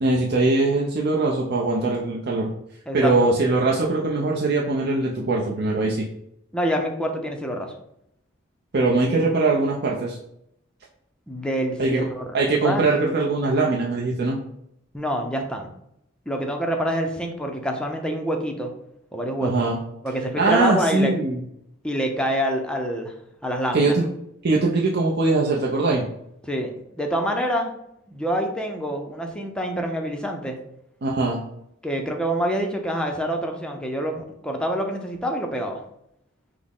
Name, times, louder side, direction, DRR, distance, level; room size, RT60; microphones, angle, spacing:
voice 1, 0.0-2.5 2.9-6.1 8.7-10.2 11.8-12.0 12.3-14.4 19.4-19.8 20.4-21.4 23.7-24.0 24.4-26.0 31.0-31.4, right 3 dB, 50° right, -2 dB, 0.5 m, -21 dB
voice 2, 2.9-3.3 6.5-7.7 11.3-12.2 12.6-12.9 14.9-15.7 16.3-18.7 19.1-19.6 20.0-21.1 21.8-23.1 23.4-23.9 26.5-27.7 28.1-30.6 31.8-35.8, equal, 5° left, 3 dB, 0.5 m, -26 dB
5.9 x 2.0 x 3.5 m, 0.76 s
head